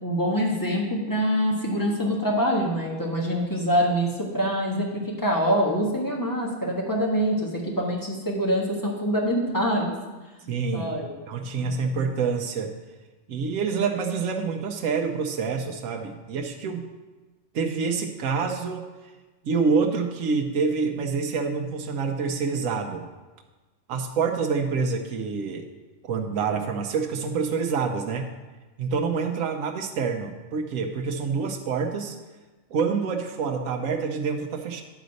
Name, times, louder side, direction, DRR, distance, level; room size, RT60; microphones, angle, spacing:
voice 1, 0.0-9.9 10.7-11.1, equal, 15° left, -2 dB, 1.3 m, -25 dB
voice 2, 10.5-11.0 11.3-12.7 13.3-16.9 17.5-18.9 19.4-23.1 23.9-25.7 26.0-28.3 28.8-32.2 32.7-34.8, right 5 dB, 80° right, 3 dB, 1.1 m, -27 dB
10.0 x 4.0 x 6.3 m, 1.2 s
omnidirectional pair, 1.4 m